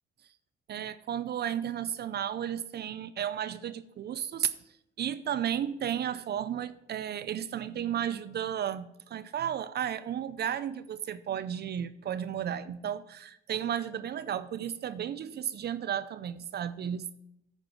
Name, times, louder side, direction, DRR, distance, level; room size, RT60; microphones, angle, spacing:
voice 1, 0.7-4.5 5.0-17.1, right 9 dB, 55° right, 0.5 m, -33 dB
8.9 x 5.4 x 6.1 m
cardioid pair, 90°, 20 cm